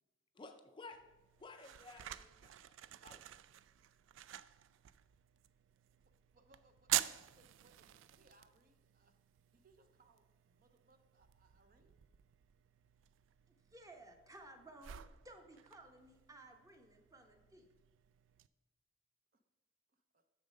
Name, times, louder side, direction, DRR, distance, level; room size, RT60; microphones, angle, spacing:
voice 1, 0.3-1.0 1.4-3.2, left 3 dB, 25° left, 6 dB, 0.4 m, -55 dB
sound 1, 0.9-18.5, right 13 dB, 70° right, 0.3 m, -47 dB
voice 2, 3.8-4.2 6.3-9.2 9.5-12.0 19.3-19.4 19.9-20.2, right 2 dB, 45° right, 7 dB, 0.7 m, -70 dB
voice 3, 13.5-15.0 15.2-17.7, right 2 dB, 15° right, 4 dB, 0.9 m, -57 dB
6.9 x 6.4 x 5.2 m, 1.1 s
head